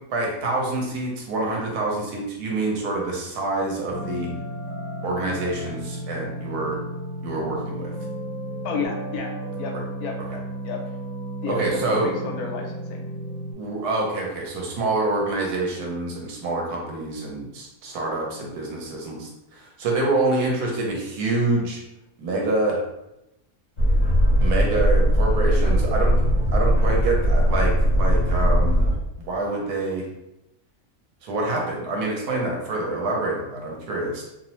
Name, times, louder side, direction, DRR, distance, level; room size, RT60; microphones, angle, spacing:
voice 1, 0.1-4.3 5.0-6.8 7.2-7.9 11.5-12.1 13.6-21.8 22.2-22.8 24.4-26.1 26.5-28.9 29.2-30.1 31.2-34.2, right 2 dB, 85° right, -1 dB, 1.2 m, -26 dB
sound 1, 3.9-13.5, right 1 dB, 40° left, 0.3 m, -33 dB
voice 2, 8.6-9.7 10.0-10.1 10.6-10.8 11.4-13.1, left 5 dB, 80° left, 1 dB, 1.1 m, -31 dB
Boat Water vehicle, 23.8-28.9, equal, 25° left, 1.0 m, -19 dB
2.8 x 2.0 x 2.9 m, 0.88 s
omnidirectional pair, 1.6 m